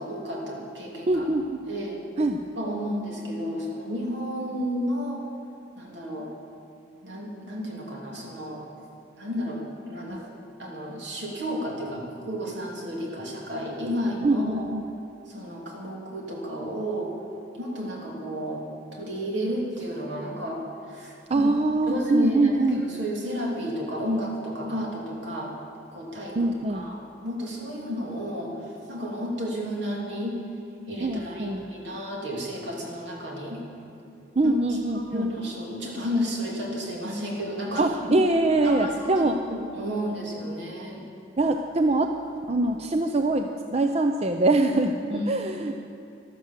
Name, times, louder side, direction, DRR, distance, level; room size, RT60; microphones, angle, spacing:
voice 1, 0.0-1.2 1.7-2.0 2.6-5.2 5.8-6.3 7.0-8.7 9.2-9.6 9.9-10.2 10.6-14.7 15.3-17.1 17.6-18.6 18.9-20.6 20.9-21.5 21.9-25.5 25.9-30.4 30.9-33.6 34.4-37.9 38.6-41.0 45.1-45.3, equal, 70° right, -2 dB, 3.0 m, -32 dB
voice 2, 1.1-1.6 2.2-2.4 10.1-10.2 14.2-14.8 21.3-22.8 26.4-26.9 31.0-31.6 34.4-35.3 37.8-39.6 41.4-42.1 42.5-44.9 45.3-45.7, right 2 dB, 35° right, 5 dB, 0.6 m, -23 dB
13.0 x 12.5 x 7.4 m, 2.6 s
head